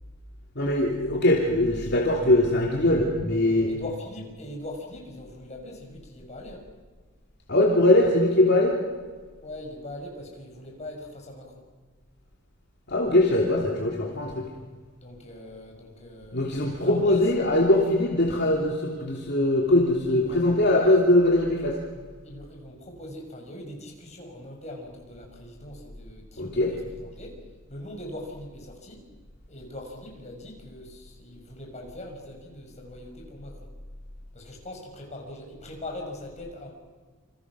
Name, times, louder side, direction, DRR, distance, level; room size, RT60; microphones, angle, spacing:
voice 1, 0.5-3.7 7.5-8.7 12.9-14.5 16.3-21.8 26.4-26.7, left 1 dB, 50° left, -1 dB, 2.8 m, -21 dB
voice 2, 3.7-6.7 9.4-11.6 15.0-16.5 16.8-17.3 20.1-20.4 20.7-21.2 22.2-27.4 27.7-29.0 29.5-33.7 34.3-36.7, left 1 dB, 35° left, 1 dB, 5.8 m, -41 dB
28.0 x 27.0 x 6.2 m, 1.4 s
head